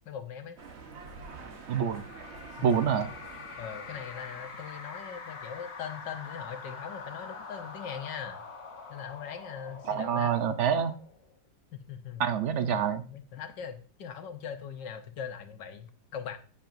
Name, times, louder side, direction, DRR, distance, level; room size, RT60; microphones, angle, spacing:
voice 1, 0.1-0.6 2.6-2.8 3.6-8.4 8.9-10.4 11.7-12.2 13.1-16.4, left 8 dB, 70° left, 7 dB, 1.4 m, -40 dB
sound 1, 0.6-4.8, right 4 dB, 40° right, 1.2 m, -47 dB
sound 2, 1.7-11.3, left 4 dB, 40° left, 1.3 m, -45 dB
voice 2, 1.7-2.1 2.6-3.1 9.8-11.0 12.2-13.0, right 7 dB, 65° right, 10 dB, 0.7 m, -27 dB
10.5 x 8.4 x 2.6 m, 0.38 s
omnidirectional pair, 2.0 m